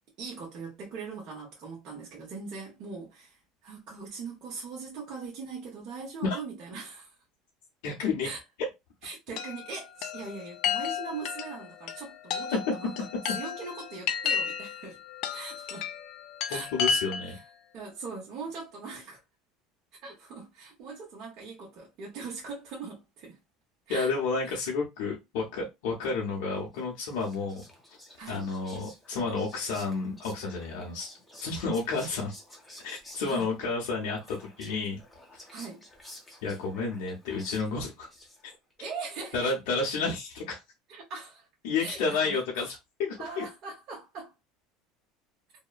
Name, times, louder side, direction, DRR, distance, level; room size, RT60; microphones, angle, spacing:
voice 1, 0.2-7.1 8.2-8.4 9.0-12.9 13.3-15.0 15.3-15.9 16.5-16.7 17.3-17.4 17.7-19.2 20.0-23.4 23.9-24.1 24.4-24.6 28.2-28.5 33.3-33.5 35.5-35.8 38.8-39.5 40.9-41.5 41.8-42.4 43.2-44.3, right 4 dB, 45° right, 0.9 m, -41 dB
voice 2, 7.8-8.3 16.5-17.4 23.9-27.6 28.3-31.1 31.4-32.3 32.8-35.0 36.4-38.1 39.3-40.6 41.6-43.4, left 4 dB, 75° left, 0.8 m, -31 dB
Chime, 9.4-17.5, left 7 dB, 55° left, 0.4 m, -33 dB
Whispering, 26.7-38.7, left 1 dB, 5° left, 0.7 m, -52 dB
2.8 x 2.1 x 2.4 m
cardioid pair, 150°, 0 cm